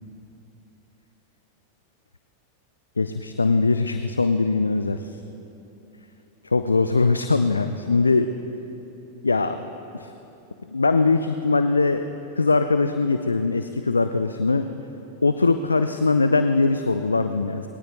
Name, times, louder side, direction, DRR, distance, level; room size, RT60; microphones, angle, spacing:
voice 1, 3.0-5.2 6.4-8.3 9.2-9.7 9.9-10.1 10.7-12.1 12.4-14.7 15.2-17.7, left 3 dB, 80° left, 9 dB, 0.5 m, -21 dB
20.5 x 18.0 x 3.1 m, 3.0 s
figure-of-eight pair, 90°, 0 cm